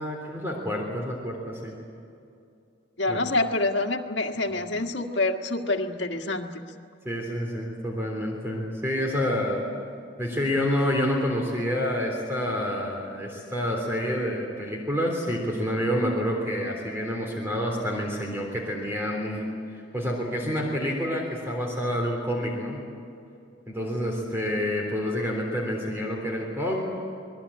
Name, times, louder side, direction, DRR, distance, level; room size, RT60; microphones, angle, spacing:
voice 1, 0.0-1.7 3.1-3.2 7.0-9.6 10.2-22.8 23.7-26.8, equal, 15° right, 0 dB, 3.5 m, -28 dB
voice 2, 3.0-6.5, left 2 dB, 65° left, 3 dB, 1.8 m, -26 dB
26.5 x 20.5 x 8.7 m, 2.6 s
head